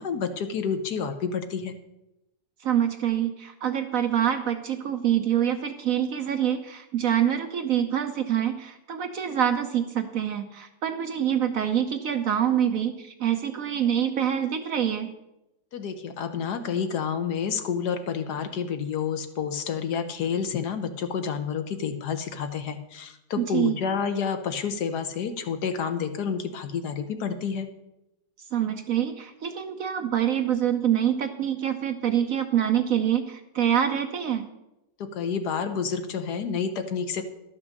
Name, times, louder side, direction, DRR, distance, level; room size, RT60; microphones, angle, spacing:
voice 1, 0.0-1.8 15.7-27.7 35.0-37.2, left 6 dB, 70° left, 8 dB, 1.4 m, -29 dB
voice 2, 2.6-15.1 23.4-23.8 28.5-34.5, right 9 dB, 60° right, 7 dB, 1.0 m, -25 dB
12.0 x 6.1 x 6.5 m, 0.92 s
omnidirectional pair, 1.9 m